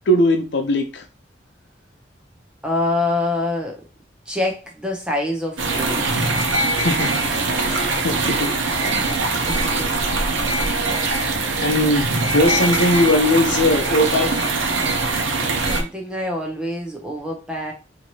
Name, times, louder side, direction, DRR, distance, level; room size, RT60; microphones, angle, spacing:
voice 1, 0.1-1.0 6.8-7.1 7.7-8.5 10.5-10.6 11.6-14.5, left 1 dB, 65° left, 0.7 m, -19 dB
voice 2, 2.6-3.8 4.3-6.2 9.0-9.9 11.0-11.3 15.7-17.7, left 2 dB, 5° right, 0.7 m, -26 dB
sound 1, 5.6-15.8, right 3 dB, 80° right, 0.9 m, -22 dB
4.5 x 3.0 x 2.8 m
head